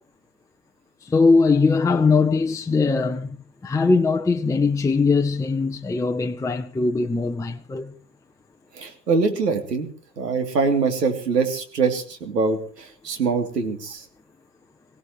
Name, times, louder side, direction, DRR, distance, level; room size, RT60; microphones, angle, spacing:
voice 1, 1.0-3.4 3.6-7.9, left 4 dB, 5° left, 0.8 m, -20 dB
voice 2, 8.7-9.9 10.2-14.0, right 4 dB, 90° right, 3.1 m, -23 dB
23.0 x 17.0 x 3.1 m
hypercardioid pair, 100°, 47 cm